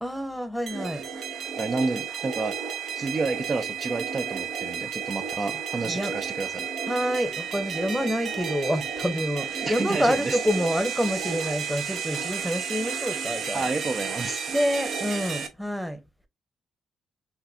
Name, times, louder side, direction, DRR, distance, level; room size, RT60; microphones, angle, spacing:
voice 1, 0.0-1.0 5.8-6.1 6.9-13.7 14.5-16.0, equal, ahead, 0.9 m, -27 dB
sound 1, 0.7-15.5, right 7 dB, 60° right, 0.9 m, -32 dB
voice 2, 1.6-2.6 3.0-6.7 9.6-10.4 13.5-14.4, right 3 dB, 35° right, 0.5 m, -30 dB
5.8 x 2.5 x 2.7 m
cardioid pair, 90°, 0 cm